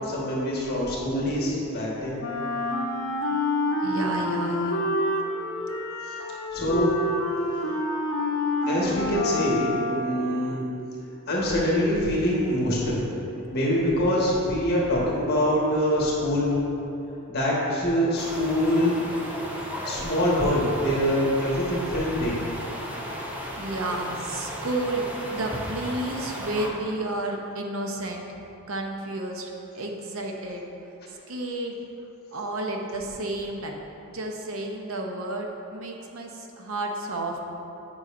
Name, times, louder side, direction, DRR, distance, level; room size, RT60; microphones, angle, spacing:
voice 1, 0.1-2.2 6.5-7.0 8.7-10.7 11.3-13.0 13.5-16.5 17.3-19.0 19.8-22.3, equal, 45° left, -5 dB, 1.4 m, -24 dB
Wind instrument woodwind instrument, 2.2-10.3, left 1 dB, 70° left, 0.7 m, -28 dB
voice 2, 3.8-4.8 5.6-5.7 23.6-28.3 28.7-30.6 31.3-31.8 32.3-33.8 34.1-37.4, right 2 dB, 65° right, 2 dB, 0.7 m, -31 dB
sound 1, 18.2-26.7, equal, 5° right, 0.6 m, -35 dB
9.2 x 5.5 x 2.5 m, 2.9 s
head